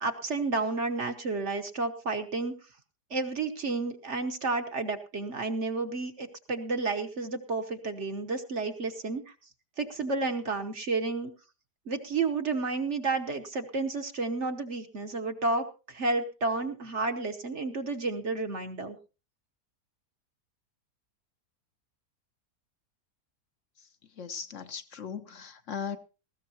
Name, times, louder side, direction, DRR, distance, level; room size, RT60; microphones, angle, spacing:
voice 1, 0.0-2.6 3.1-9.2 9.8-11.3 11.9-19.0, right 3 dB, 50° right, 1.3 m, -31 dB
voice 2, 24.2-26.0, left 7 dB, 50° left, 1.3 m, -38 dB
19.5 x 15.5 x 2.8 m
omnidirectional pair, 1.7 m